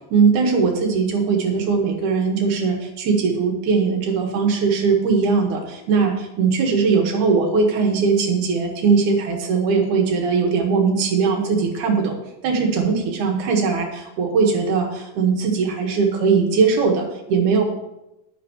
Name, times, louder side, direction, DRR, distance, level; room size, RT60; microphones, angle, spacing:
voice 1, 0.1-13.9 14.2-17.6, right 5 dB, 85° right, 2 dB, 3.0 m, -20 dB
11.0 x 10.5 x 3.1 m, 0.92 s
omnidirectional pair, 3.4 m